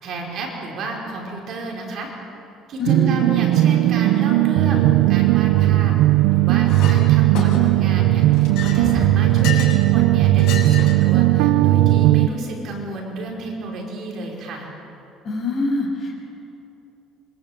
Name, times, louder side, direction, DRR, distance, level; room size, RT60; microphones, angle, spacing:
voice 1, 0.0-2.1 2.7-5.9 6.3-14.7, right 2 dB, 45° right, -1 dB, 5.0 m, -32 dB
voice 2, 2.8-3.2 15.2-16.2, left 2 dB, 30° left, 0 dB, 6.5 m, -24 dB
sound 1, 2.8-12.3, right 15 dB, 85° right, 0.6 m, -16 dB
sound 2, 5.9-6.8 8.2-9.4, left 1 dB, 10° left, 3.4 m, -34 dB
Chink clink, 6.7-7.0 7.3-7.9 8.3-9.8 10.4-11.1, left 7 dB, 70° left, 7.0 m, -31 dB
26.5 x 25.0 x 8.9 m, 2.9 s
cardioid pair, 170°, 0 cm